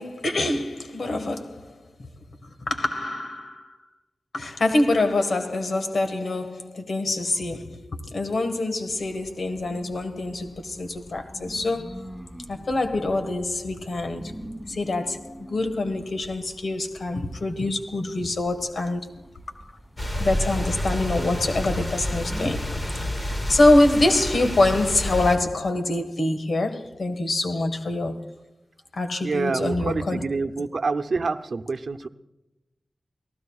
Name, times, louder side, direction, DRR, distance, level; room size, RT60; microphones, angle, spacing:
voice 1, 0.0-1.7 2.4-3.8 4.3-12.1 12.5-19.1 20.2-28.2 28.9-30.2, left 2 dB, 80° left, 1.6 m, -25 dB
sound 1, 8.9-24.3, equal, 10° left, 2.5 m, -44 dB
sound 2, 20.0-25.4, left 1 dB, 30° left, 1.9 m, -29 dB
voice 2, 29.2-32.1, right 4 dB, 75° right, 0.7 m, -27 dB
29.0 x 18.5 x 2.4 m
wide cardioid pair, 85°, 0 cm